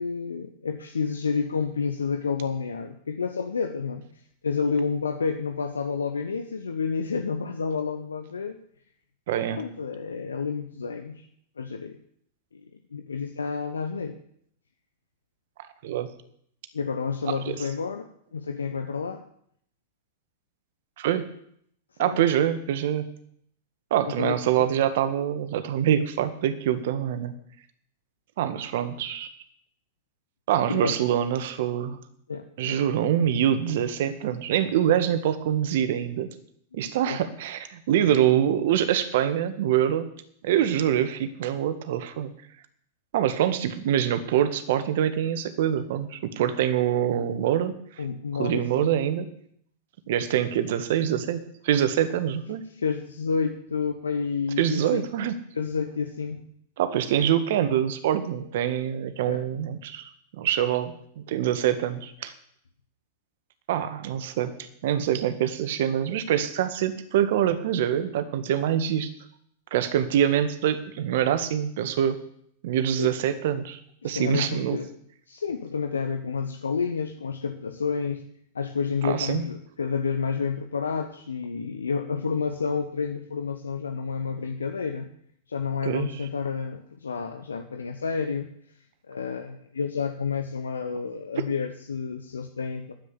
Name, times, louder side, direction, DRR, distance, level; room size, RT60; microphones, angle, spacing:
voice 1, 0.0-4.1 4.4-8.6 9.4-11.3 11.6-12.0 12.5-14.2 16.7-19.2 22.0-22.3 24.1-24.7 30.7-31.0 32.3-32.9 37.1-37.2 48.0-48.9 52.7-55.0 55.5-56.5 59.3-59.4 73.0-73.1 74.0-74.9 75.3-78.2 78.5-85.1 85.5-88.5 89.1-92.9, left 5 dB, 80° left, 7 dB, 1.1 m, -30 dB
voice 2, 9.3-9.6 15.8-16.1 17.3-17.4 21.0-21.3 22.0-23.0 23.9-27.3 28.4-29.3 30.5-32.0 32.6-36.3 36.7-40.1 40.4-42.3 43.1-47.7 48.4-49.3 50.1-52.6 54.6-55.3 56.8-60.1 60.4-62.3 63.7-69.1 69.7-72.2 72.6-74.8 79.0-79.5 85.8-86.1, right 10 dB, 60° right, 11 dB, 1.8 m, -25 dB
10.5 x 10.0 x 9.8 m, 0.67 s
figure-of-eight pair, 100°, 0 cm